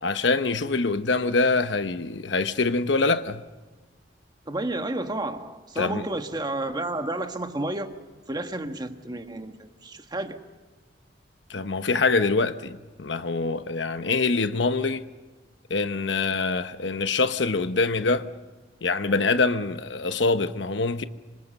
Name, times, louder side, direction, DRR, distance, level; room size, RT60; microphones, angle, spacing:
voice 1, 0.0-3.4 5.8-6.0 11.5-15.1 15.7-18.3 18.8-21.0, left 3 dB, 80° left, 1.0 m, -24 dB
voice 2, 4.5-8.0 8.3-10.4, right 2 dB, 25° right, 1.4 m, -31 dB
27.0 x 25.5 x 5.4 m
head